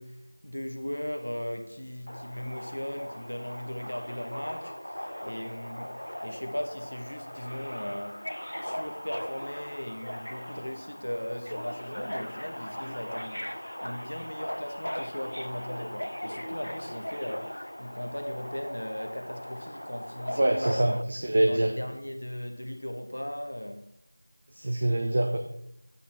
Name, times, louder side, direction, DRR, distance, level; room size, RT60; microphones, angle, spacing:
voice 1, 0.0-6.0 6.2-8.3 8.6-20.8 21.3-23.9, equal, 65° left, 1.0 m, -38 dB
Subway metro underground, 2.1-21.0, equal, 80° left, 0.5 m, -39 dB
voice 2, 20.4-21.7 24.5-25.4, right 1 dB, 15° right, 0.3 m, -25 dB
8.4 x 8.2 x 3.8 m
figure-of-eight pair, 180°, 0 cm